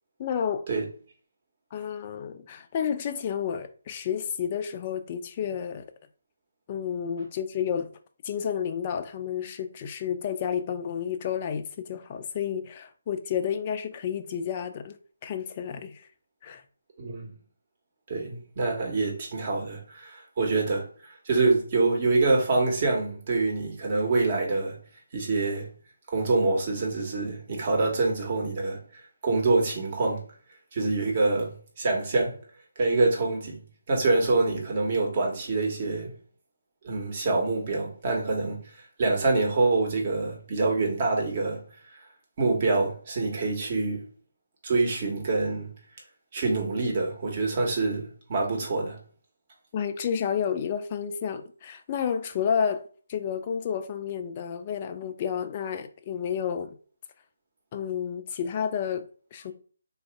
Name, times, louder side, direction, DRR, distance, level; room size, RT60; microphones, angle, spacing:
voice 1, 0.2-0.7 1.7-5.9 6.7-7.9 8.2-15.0 15.2-16.1 16.4-16.6 49.7-56.8 57.7-59.5, left 8 dB, 30° left, 0.4 m, -31 dB
voice 2, 17.0-17.3 18.1-24.8 25.1-25.7 26.1-30.2 30.7-31.5 31.8-32.4 32.8-33.6 33.9-36.1 36.8-38.6 39.0-41.6 42.4-44.1 44.6-45.7 46.3-49.0, right 3 dB, 40° right, 1.3 m, -26 dB
3.9 x 2.6 x 3.4 m
figure-of-eight pair, 160°, 0 cm